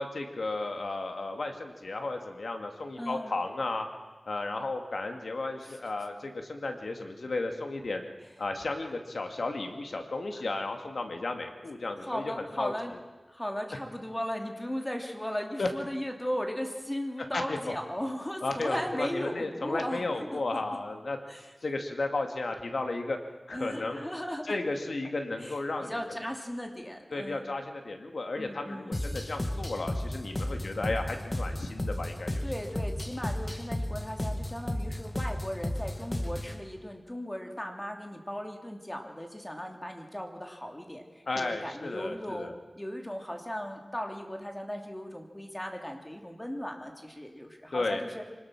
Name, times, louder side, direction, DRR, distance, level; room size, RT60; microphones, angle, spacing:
voice 1, 0.0-3.9 4.3-8.0 8.4-12.7 15.6-15.7 17.3-17.7 18.4-21.2 21.6-23.2 23.5-24.0 24.5-26.0 27.1-32.4 41.3-42.5 47.7-48.0, left 2 dB, 90° left, 4 dB, 2.3 m, -34 dB
voice 2, 3.0-3.4 5.6-5.8 10.4-10.5 12.0-12.9 13.3-20.6 21.3-21.5 23.5-24.6 25.4-27.5 28.4-29.0 30.6-30.9 32.4-48.2, equal, 15° left, 3 dB, 2.8 m, -37 dB
sound 1, 28.9-36.6, left 1 dB, 30° left, 2.2 m, -34 dB
25.0 x 19.5 x 6.1 m, 1.2 s
wide cardioid pair, 70°, 0 cm